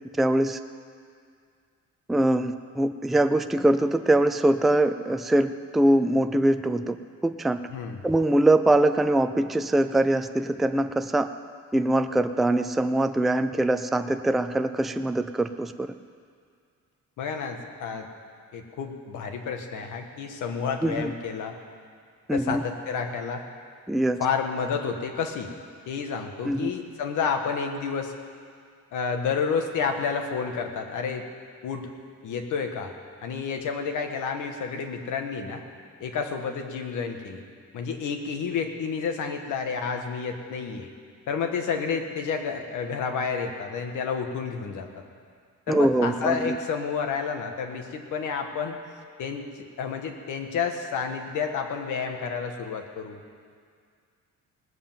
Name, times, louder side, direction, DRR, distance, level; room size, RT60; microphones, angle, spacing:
voice 1, 0.2-0.6 2.1-7.0 7.2-7.6 8.0-11.3 11.7-15.9 20.8-21.1 22.3-22.6 23.9-24.2 26.4-26.7 45.7-46.6, right 1 dB, ahead, 9 dB, 0.3 m, -23 dB
voice 2, 7.7-8.0 17.2-18.1 18.5-21.5 22.3-23.4 24.2-25.5 25.9-28.1 28.9-31.2 31.6-31.9 32.2-32.9 33.2-35.6 36.0-37.4 37.7-40.9 41.3-44.9 45.7-48.8 49.2-53.3, left 6 dB, 90° left, 4 dB, 1.6 m, -30 dB
18.5 x 7.8 x 7.4 m, 2.1 s
cardioid pair, 150°, 30 cm